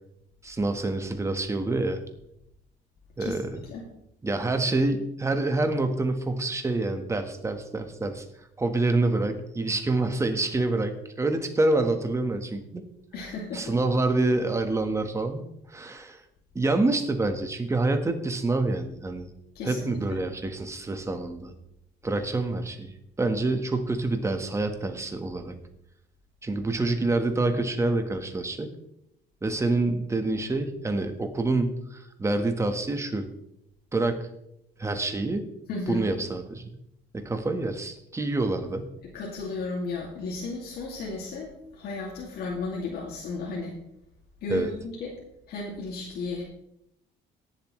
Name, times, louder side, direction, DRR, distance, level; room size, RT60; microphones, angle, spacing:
voice 1, 0.4-2.0 3.2-3.6 4.2-8.2 8.6-12.8 13.5-16.2 16.5-19.3 19.6-21.5 22.0-25.5 26.4-28.7 29.4-33.3 33.9-34.3 34.8-35.5 35.9-36.7 37.1-38.9 44.5-44.7, right 2 dB, 15° right, 6 dB, 1.3 m, -27 dB
voice 2, 13.1-13.8 19.5-20.2 35.7-36.1 39.0-43.7 44.4-45.2 45.5-46.4, left 3 dB, 70° left, -3 dB, 2.3 m, -34 dB
18.0 x 7.4 x 3.2 m, 0.78 s
cardioid pair, 110°, 17 cm